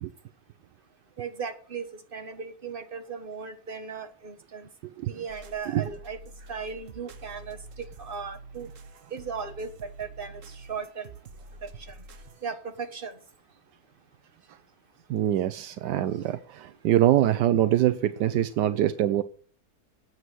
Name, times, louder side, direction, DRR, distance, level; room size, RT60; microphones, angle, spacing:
voice 1, 1.2-4.7 5.1-6.2 6.5-8.7 9.1-11.1 11.6-12.0 12.4-13.1, right 5 dB, 35° right, 1.4 m, -37 dB
sound 1, 5.3-12.5, right 2 dB, 55° right, 1.2 m, -47 dB
voice 2, 15.1-19.2, right 12 dB, 85° right, 1.3 m, -24 dB
9.1 x 7.9 x 9.2 m
omnidirectional pair, 1.8 m